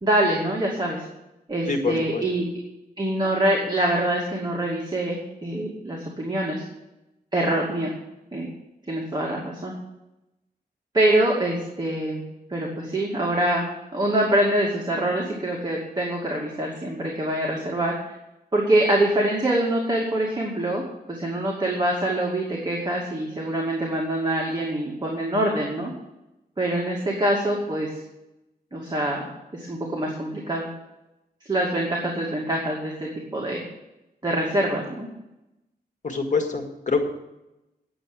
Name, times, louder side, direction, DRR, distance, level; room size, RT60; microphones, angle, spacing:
voice 1, 0.0-1.0 1.5-2.5 3.0-6.6 7.3-7.9 8.3-8.5 8.9-9.7 10.9-12.2 12.5-13.7 13.9-17.9 18.5-20.8 21.1-25.9 26.6-27.9 28.7-29.3 29.5-30.7 31.5-33.6 34.2-35.1, right 1 dB, 25° right, -3 dB, 2.4 m, -24 dB
voice 2, 1.7-2.2 36.0-37.0, left 4 dB, 50° left, 4 dB, 1.9 m, -25 dB
10.0 x 7.6 x 8.7 m, 0.93 s
wide cardioid pair, 110°, 17 cm